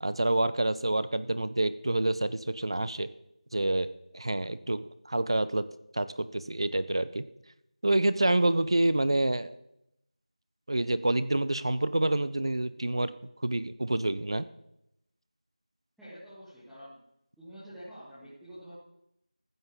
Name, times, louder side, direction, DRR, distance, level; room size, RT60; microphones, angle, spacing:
voice 1, 0.0-3.1 3.5-3.9 4.1-5.6 5.9-7.2 7.8-9.6 10.7-13.1 13.4-14.5, right 1 dB, 45° right, 14 dB, 0.7 m, -27 dB
voice 2, 16.0-17.0 17.4-18.7, equal, ahead, -16 dB, 0.9 m, -47 dB
15.0 x 12.5 x 3.7 m, 0.81 s
figure-of-eight pair, 175°, 4 cm